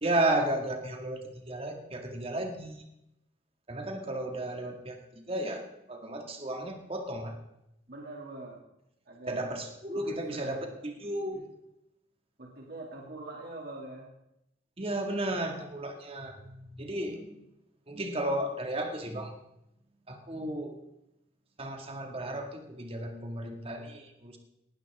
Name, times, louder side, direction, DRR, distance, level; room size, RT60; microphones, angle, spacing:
voice 1, 0.0-2.8 3.7-7.4 9.3-11.5 14.8-17.4 17.9-19.3 20.1-20.8 21.6-24.4, right 1 dB, 30° right, 4 dB, 2.0 m, -34 dB
voice 2, 7.9-8.7 9.1-9.5 9.9-11.4 12.4-14.1, right 2 dB, 55° right, -1 dB, 2.4 m, -44 dB
19.0 x 12.0 x 3.6 m, 0.83 s
head